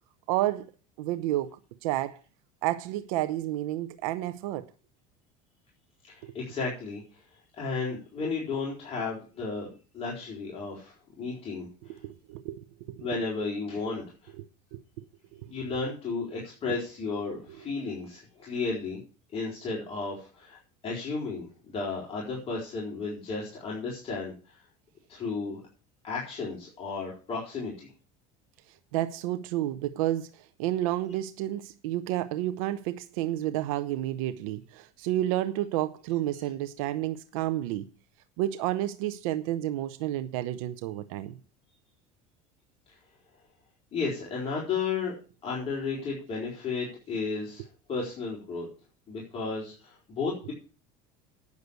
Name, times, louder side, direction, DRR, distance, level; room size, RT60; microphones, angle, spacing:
voice 1, 0.3-0.7 1.0-1.5 1.8-2.2 2.6-4.6 6.2-6.3 11.9-13.1 14.4-14.8 15.3-15.5 28.9-37.9 38.4-41.3, right 14 dB, 85° right, 0.8 m, -30 dB
voice 2, 6.1-7.2 7.6-9.7 9.9-12.0 13.0-14.3 15.5-19.0 19.3-24.6 25.1-25.6 26.0-27.9 43.9-45.1 45.4-47.6 47.9-48.7 49.1-50.5, left 4 dB, 35° left, 4.3 m, -33 dB
9.5 x 6.6 x 8.2 m
supercardioid pair, 115°, 18 cm